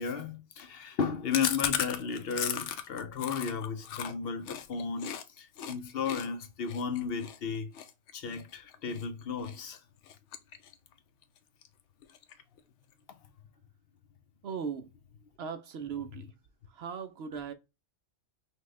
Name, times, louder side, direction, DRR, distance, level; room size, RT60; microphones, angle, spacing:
voice 1, 0.0-5.1 5.4-7.7 8.1-9.8, left 6 dB, 60° left, 0.8 m, -34 dB
Chewing mastication, 1.3-5.2 5.6-5.8 6.1-9.1 9.4-9.8 10.1-10.9 11.2-11.3 11.6-11.7 12.0-12.6, left 9 dB, 85° left, 0.9 m, -36 dB
voice 2, 14.4-14.9 15.4-16.3 16.7-17.5, right 6 dB, 65° right, 0.8 m, -38 dB
5.8 x 2.2 x 3.2 m
omnidirectional pair, 1.2 m